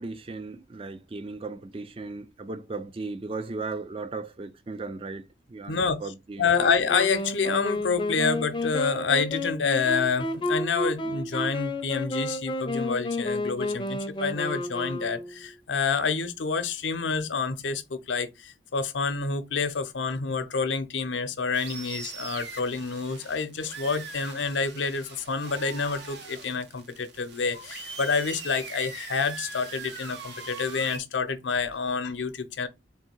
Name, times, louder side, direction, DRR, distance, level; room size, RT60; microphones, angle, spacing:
voice 1, 0.0-5.2 5.5-6.5, right 3 dB, 30° right, 0.3 m, -36 dB
voice 2, 5.7-6.1 6.4-32.7, left 5 dB, 90° left, 0.7 m, -28 dB
Wind instrument woodwind instrument, 6.5-15.5, left 1 dB, 25° left, 0.5 m, -31 dB
sound 1, 21.5-31.0, right 5 dB, 70° right, 0.9 m, -41 dB
3.5 x 2.6 x 4.4 m
head